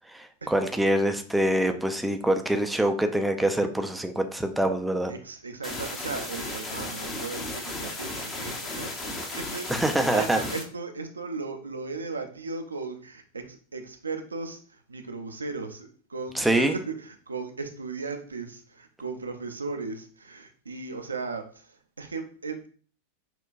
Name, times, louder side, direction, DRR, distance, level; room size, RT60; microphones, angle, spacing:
voice 1, 0.1-5.1 9.7-10.4 16.4-16.7, right 1 dB, 5° right, 6 dB, 0.4 m, -25 dB
voice 2, 5.1-22.7, right 4 dB, 75° right, 5 dB, 0.5 m, -37 dB
sound 1, 5.6-10.6, left 2 dB, 25° left, 0.7 m, -35 dB
5.8 x 2.2 x 2.5 m, 0.43 s
figure-of-eight pair, 90°, 0 cm